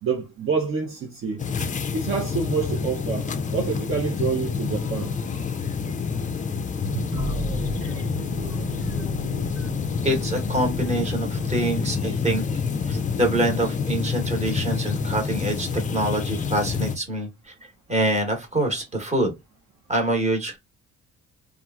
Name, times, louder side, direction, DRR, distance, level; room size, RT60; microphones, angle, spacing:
voice 1, 0.0-1.4 1.9-5.1 6.9-7.0, right 5 dB, 45° right, 0.6 m, -27 dB
sound 1, 1.4-17.0, left 5 dB, 25° left, 0.4 m, -28 dB
sound 2, 7.1-11.8, right 4 dB, 60° right, 1.2 m, -36 dB
voice 2, 10.0-12.4 12.9-17.5 17.9-19.3 19.9-20.6, right 1 dB, 25° right, 1.0 m, -25 dB
2.8 x 2.4 x 2.3 m
cardioid pair, 90°, 30 cm